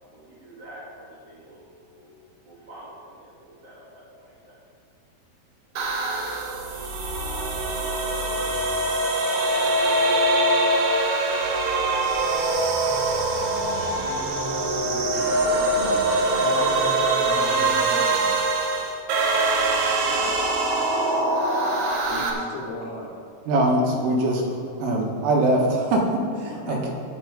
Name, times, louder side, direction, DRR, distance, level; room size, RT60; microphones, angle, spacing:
voice 1, 0.0-1.6 1.9-2.1 2.4-4.6, right 1 dB, 45° right, -7 dB, 2.4 m, -46 dB
sound 1, 5.8-22.3, right 2 dB, 70° right, 2.5 m, -23 dB
sound 2, 13.4-18.2, equal, 5° right, 2.0 m, -38 dB
voice 2, 15.2-16.0 16.4-18.1 20.0-20.3 22.1-23.1 26.5-26.8, left 2 dB, 75° left, -3 dB, 4.7 m, -36 dB
voice 3, 23.5-24.4 24.8-26.9, right 1 dB, 85° right, 0 dB, 4.1 m, -22 dB
17.0 x 6.1 x 5.0 m, 2.3 s
omnidirectional pair, 5.6 m